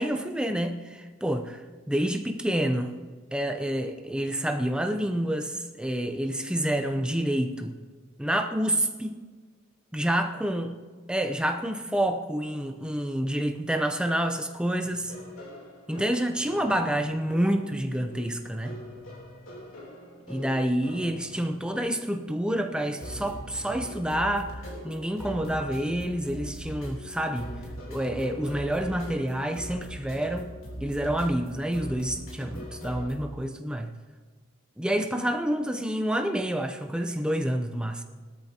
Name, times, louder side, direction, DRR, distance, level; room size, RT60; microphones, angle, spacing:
voice 1, 0.0-1.6 1.9-2.9 3.3-7.7 8.2-9.2 9.9-10.7 11.1-15.1 15.9-18.8 20.3-27.5 27.9-30.5 30.8-33.9 34.8-38.0, right 1 dB, 5° right, 0.7 m, -28 dB
sound 1, 14.8-33.1, equal, 75° left, 3.4 m, -42 dB
19.0 x 13.0 x 2.9 m
head